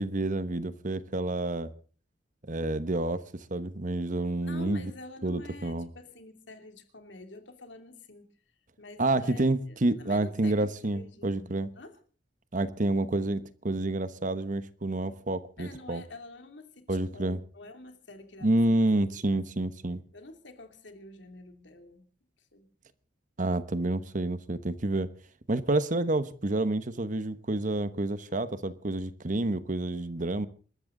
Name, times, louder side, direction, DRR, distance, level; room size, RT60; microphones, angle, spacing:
voice 1, 0.0-1.7 2.4-4.9 5.2-5.9 9.0-11.7 12.5-16.0 16.9-17.4 18.4-20.0 23.4-25.1 25.5-30.5, right 2 dB, 45° right, 13 dB, 1.1 m, -29 dB
voice 2, 4.4-8.3 8.8-12.0 15.6-18.9 19.2-19.4 20.1-22.1 22.4-22.7, left 2 dB, 65° left, 6 dB, 2.8 m, -47 dB
27.5 x 13.5 x 3.9 m, 0.40 s
head